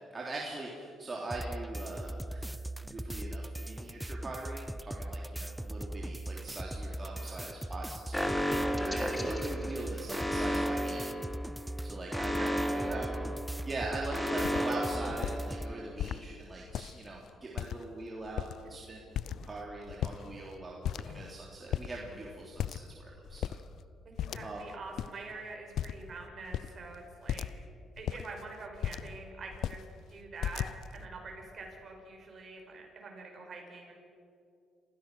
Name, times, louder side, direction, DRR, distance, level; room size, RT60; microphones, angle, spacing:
voice 1, 0.1-2.6 2.8-11.1 11.8-13.1 13.6-20.8 21.0-23.5 24.4-24.6, right 2 dB, 30° right, -3 dB, 3.1 m, -41 dB
sound 1, 1.3-15.7, right 1 dB, 5° right, 0.5 m, -40 dB
voice 2, 7.0-7.5 12.1-13.3 24.0-27.5 28.0-33.9, right 3 dB, 50° right, 1 dB, 5.7 m, -46 dB
Alarm, 8.1-15.9, equal, 10° left, 2.1 m, -34 dB
sound 2, 14.0-14.1 14.4-14.7 15.1-15.4 16.0-16.2 16.7-17.1 17.6-18.0 18.2-18.8 19.2-19.6 19.9-20.5 20.8-21.4 21.7-21.9 22.6-23.0 23.3-23.6 24.2-24.7 25.0-25.1 25.8-26.1 26.5-26.7 27.3-27.6 28.0-29.2 29.5-29.8 30.4-31.0, left 10 dB, 70° left, 0.6 m, -36 dB
28.0 x 15.5 x 6.2 m, 2.6 s
cardioid pair, 90°, 0 cm